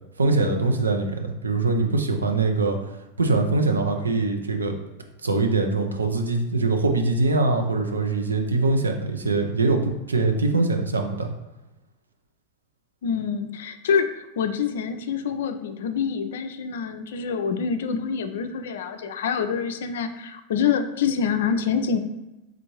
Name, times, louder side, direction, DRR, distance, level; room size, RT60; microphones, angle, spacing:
voice 1, 0.2-2.8 3.2-4.7 5.2-11.3, right 3 dB, 75° right, 4 dB, 0.5 m, -23 dB
voice 2, 13.0-14.1 14.4-22.0, left 6 dB, 60° left, 8 dB, 0.3 m, -26 dB
3.7 x 3.4 x 3.0 m, 0.99 s
figure-of-eight pair, 90°, 0 cm